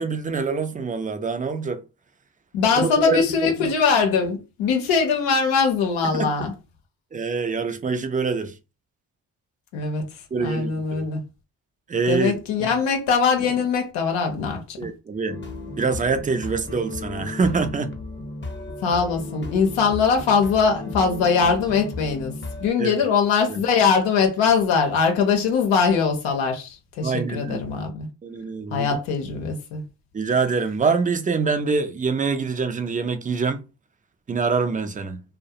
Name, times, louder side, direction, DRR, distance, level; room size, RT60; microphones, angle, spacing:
voice 1, 0.0-1.8 2.8-3.2 3.6-3.7 6.0-6.3 7.1-8.5 10.3-11.0 11.9-12.3 12.6-12.7 14.8-15.4 15.8-17.9 22.8-22.9 23.5-23.6 27.0-27.6 28.2-29.0 30.1-33.6 34.3-35.2, right 4 dB, 20° right, 0.4 m, -25 dB
voice 2, 2.5-6.5 9.7-10.0 10.4-11.2 12.1-14.8 18.8-28.1 28.7-29.8, left 5 dB, 85° left, 0.7 m, -21 dB
sound 1, 15.3-22.7, left 2 dB, 25° left, 0.7 m, -35 dB
2.3 x 2.1 x 2.7 m
supercardioid pair, 50°, 44 cm